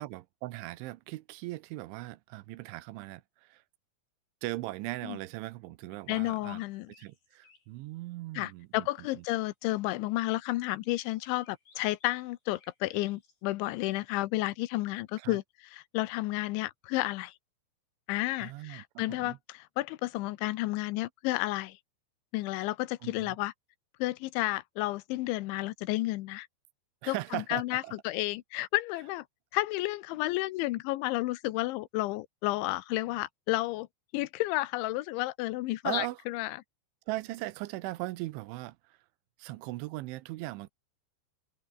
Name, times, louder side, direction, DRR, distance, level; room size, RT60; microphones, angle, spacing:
voice 1, 0.0-3.6 4.4-6.6 7.0-9.2 15.2-15.4 18.4-19.4 23.0-23.4 27.0-27.9 35.8-36.2 37.1-39.0 39.4-40.7, right 18 dB, 85° right, 3.3 m, -39 dB
sound 1, 5.9-6.1 6.4-7.7 11.4-13.4, left 4 dB, 55° left, 8.9 m, -62 dB
voice 2, 6.1-6.9 8.4-17.3 18.1-21.8 22.3-23.5 24.0-26.5 27.1-29.2 29.5-33.9 34.1-36.6, left 18 dB, 80° left, 3.2 m, -32 dB
omnidirectional pair, 5.4 m